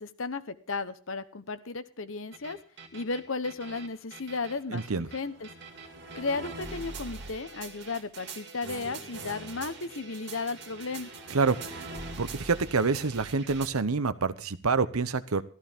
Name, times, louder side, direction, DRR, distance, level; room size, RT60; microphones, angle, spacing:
voice 1, 0.0-2.6 2.9-5.5 6.1-11.1, left 3 dB, 65° left, 12 dB, 1.0 m, -34 dB
sound 1, 2.3-13.7, right 3 dB, 50° right, 2.4 m, -43 dB
voice 2, 4.7-5.1 11.3-11.9 12.2-15.4, right 4 dB, 85° right, 14 dB, 0.9 m, -27 dB
14.0 x 13.5 x 3.6 m, 0.43 s
head